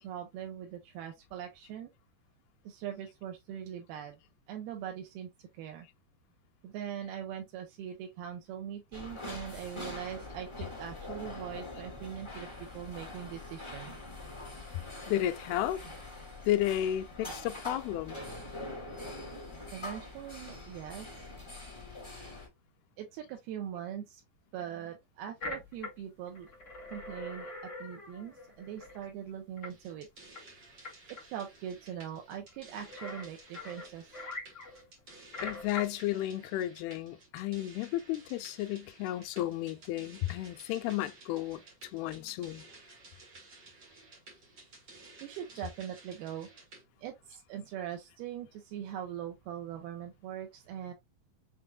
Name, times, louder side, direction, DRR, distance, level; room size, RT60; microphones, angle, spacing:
voice 1, 0.0-1.9 2.6-4.2 4.5-5.9 6.6-13.9 19.7-21.1 23.0-24.2 24.5-26.5 26.9-27.5 27.8-30.1 31.2-34.2 45.2-46.5 47.0-50.9, right 10 dB, 85° right, 2.6 m, -41 dB
sound 1, 8.9-22.5, left 2 dB, 15° left, 1.0 m, -44 dB
voice 2, 15.1-15.8 16.5-18.2 35.4-41.6 41.9-42.7, left 13 dB, 85° left, 2.5 m, -33 dB
sound 2, 25.4-25.9 26.3-29.1 29.6-29.7 30.3-30.4 30.8-30.9 31.2-31.3 32.5-32.6 32.8-35.8, left 2 dB, 30° left, 1.4 m, -43 dB
sound 3, 29.6-46.8, right 3 dB, 45° right, 1.6 m, -55 dB
6.5 x 3.4 x 2.2 m
omnidirectional pair, 4.4 m